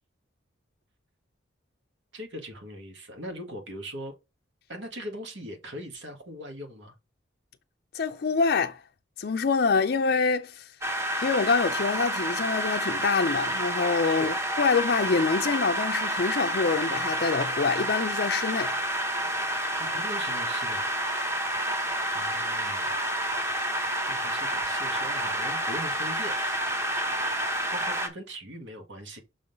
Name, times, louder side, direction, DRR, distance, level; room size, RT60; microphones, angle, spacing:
voice 1, 2.1-4.1 4.7-6.9 14.0-14.4 19.8-21.4 22.1-23.2 24.0-26.4 27.7-29.2, equal, 75° right, 1.6 m, -40 dB
voice 2, 7.9-8.8 9.2-10.7 11.2-18.7, left 4 dB, 55° left, 0.4 m, -26 dB
sound 1, 10.8-28.1, right 1 dB, 15° right, 1.0 m, -29 dB
6.2 x 3.8 x 5.1 m
head